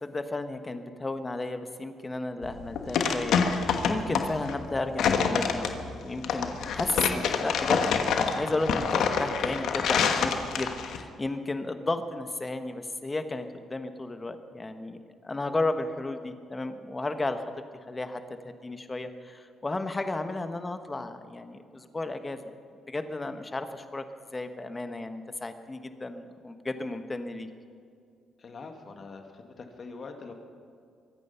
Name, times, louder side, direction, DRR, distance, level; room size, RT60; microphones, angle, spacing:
voice 1, 0.0-15.0 15.2-17.4 17.9-22.4 22.9-24.0 24.3-27.5, left 2 dB, 20° left, 8 dB, 1.2 m, -33 dB
sound 1, 2.4-11.0, left 6 dB, 75° left, 1.2 m, -27 dB
voice 2, 28.4-30.3, left 4 dB, 45° left, 4 dB, 2.0 m, -43 dB
24.0 x 9.3 x 5.7 m, 2.3 s
cardioid pair, 90°, 0 cm